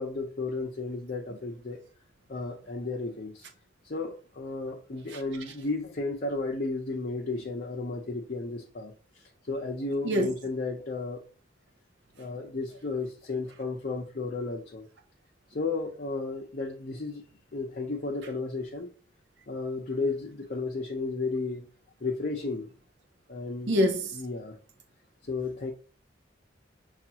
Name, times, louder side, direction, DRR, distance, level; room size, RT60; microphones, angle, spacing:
voice 1, 0.0-1.8 2.3-3.4 3.8-11.3 12.2-14.9 15.5-17.2 17.5-18.9 19.5-21.7 22.0-22.7 23.3-23.8 24.1-24.6 25.3-25.7, left 3 dB, 50° left, 0.6 m, -33 dB
voice 2, 23.7-24.2, equal, 65° right, 0.5 m, -25 dB
6.3 x 2.4 x 2.8 m
head